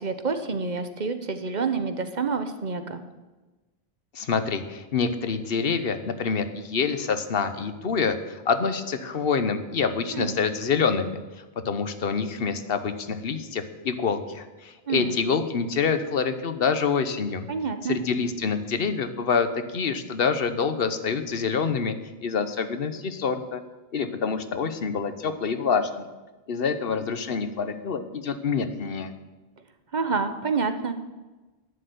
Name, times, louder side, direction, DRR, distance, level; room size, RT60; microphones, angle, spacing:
voice 1, 0.0-3.0 10.1-10.4 14.9-15.2 17.5-18.0 29.9-30.9, right 5 dB, 45° right, 9 dB, 1.0 m, -28 dB
voice 2, 4.1-11.2 11.6-17.5 17.9-21.9 22.2-23.6 23.9-26.1 26.5-29.1, left 5 dB, 65° left, 10 dB, 1.1 m, -26 dB
10.5 x 6.7 x 9.2 m, 1.2 s
omnidirectional pair, 1.0 m